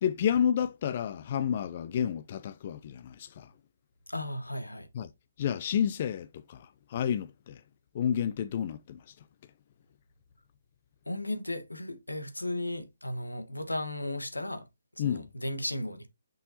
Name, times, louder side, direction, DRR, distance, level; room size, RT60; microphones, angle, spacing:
voice 1, 0.0-3.5 4.9-5.1 5.4-7.6 7.9-9.1 15.0-15.3, left 9 dB, 40° left, 0.4 m, -30 dB
voice 2, 4.1-4.9 11.1-14.7 15.0-16.1, left 1 dB, 90° left, 1.3 m, -35 dB
6.2 x 5.5 x 2.8 m
figure-of-eight pair, 140°, 0 cm